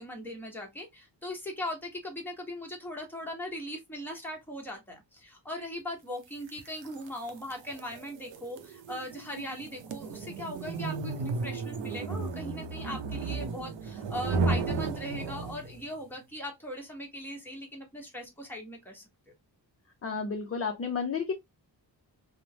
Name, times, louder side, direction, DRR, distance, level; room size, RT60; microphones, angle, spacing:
voice 1, 0.0-19.0, left 1 dB, 5° left, 0.9 m, -39 dB
Electrical Tape Pull - Slow, 6.5-15.8, right 3 dB, 90° right, 0.6 m, -34 dB
voice 2, 20.0-21.3, left 5 dB, 35° left, 0.4 m, -31 dB
3.1 x 2.0 x 2.6 m
wide cardioid pair, 145°, 43 cm